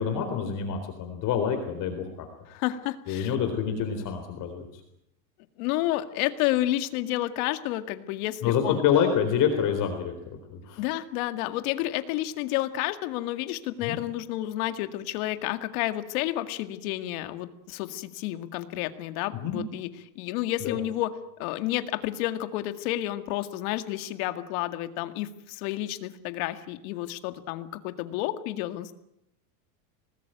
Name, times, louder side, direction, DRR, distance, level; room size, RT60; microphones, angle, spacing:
voice 1, 0.0-2.1 3.1-4.7 8.4-10.1 10.5-10.8 13.8-14.0 19.4-19.6 20.6-20.8, left 8 dB, 40° left, 6 dB, 4.0 m, -26 dB
voice 2, 2.5-3.3 5.6-8.8 10.8-19.9 20.2-21.1 21.4-28.9, left 15 dB, 60° left, 9 dB, 2.1 m, -30 dB
25.5 x 20.0 x 9.2 m, 0.82 s
supercardioid pair, 145°, 48 cm